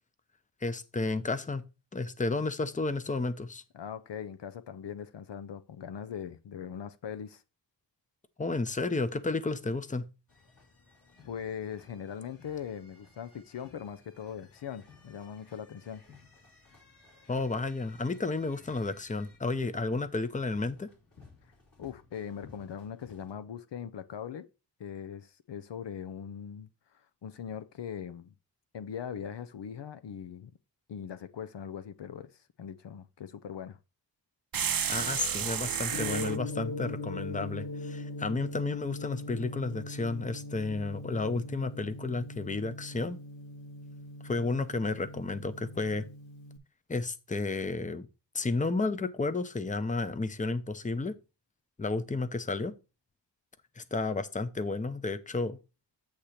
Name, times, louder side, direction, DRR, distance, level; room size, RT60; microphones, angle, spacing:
voice 1, 0.6-1.6 1.9-3.6 8.4-10.0 17.3-20.9 34.9-43.2 44.2-46.1 46.9-48.1 48.3-51.1 51.8-52.7 53.8-55.6, left 3 dB, 15° left, 0.6 m, -32 dB
voice 2, 3.7-7.4 11.2-16.0 21.8-24.5 24.8-26.7 26.9-28.3 28.7-30.5 30.9-32.3 32.6-33.8, left 8 dB, 70° left, 0.6 m, -40 dB
sound 1, 10.3-23.3, left 4 dB, 45° left, 2.8 m, -58 dB
sound 2, 34.5-36.4, right 8 dB, 50° right, 0.6 m, -31 dB
Gong, 35.9-46.6, left 2 dB, 90° left, 1.2 m, -41 dB
8.4 x 2.9 x 6.3 m
wide cardioid pair, 85°, 44 cm